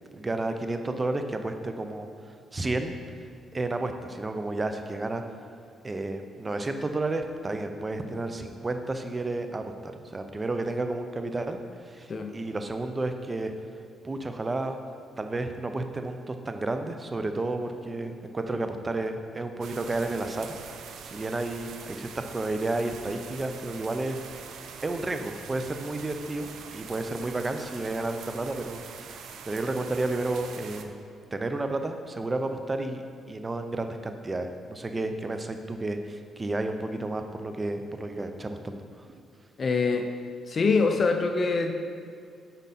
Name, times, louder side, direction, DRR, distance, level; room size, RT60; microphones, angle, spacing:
voice 1, 0.1-2.1 2.5-3.0 3.5-5.2 5.8-13.5 14.0-14.8 15.2-20.5 21.0-24.5 24.8-30.9 31.3-33.0 33.3-39.1, right 2 dB, 25° right, 7 dB, 0.6 m, -31 dB
sound 1, 19.6-30.8, right 6 dB, 75° right, 0.5 m, -44 dB
voice 2, 39.6-40.1 40.5-41.7, left 4 dB, 40° left, 6 dB, 0.6 m, -24 dB
8.2 x 5.3 x 4.3 m, 2.2 s
cardioid pair, 90°, 0 cm